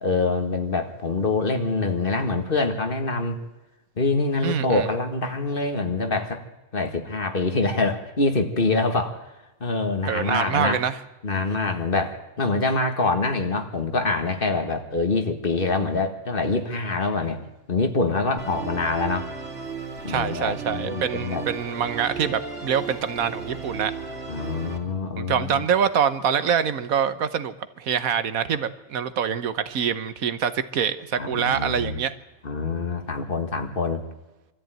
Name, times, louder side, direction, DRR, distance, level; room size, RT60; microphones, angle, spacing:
voice 1, 0.0-3.4 4.0-6.4 6.7-9.2 9.6-10.8 11.2-17.4 17.7-19.3 20.0-21.5 24.3-25.7 31.2-32.0 32.4-34.0, left 3 dB, 40° left, 7 dB, 1.8 m, -25 dB
voice 2, 4.4-4.9 10.0-11.0 20.1-23.9 25.2-32.1, right 8 dB, 80° right, 12 dB, 1.4 m, -25 dB
Musical instrument, 18.4-24.8, right 5 dB, 60° right, 3.0 m, -35 dB
23.5 x 13.5 x 9.0 m, 1.0 s
omnidirectional pair, 1.5 m